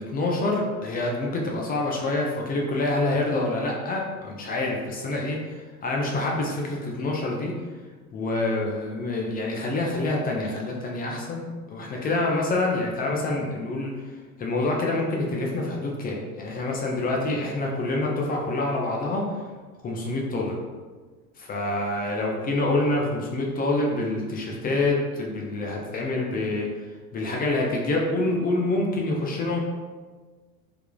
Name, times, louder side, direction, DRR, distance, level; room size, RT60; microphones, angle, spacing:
voice 1, 0.0-7.6 8.1-14.0 14.4-19.2 19.8-20.6 21.4-26.7 27.1-29.6, left 2 dB, 20° left, -1 dB, 0.5 m, -26 dB
3.4 x 3.3 x 2.3 m, 1.4 s
figure-of-eight pair, 70°, 45 cm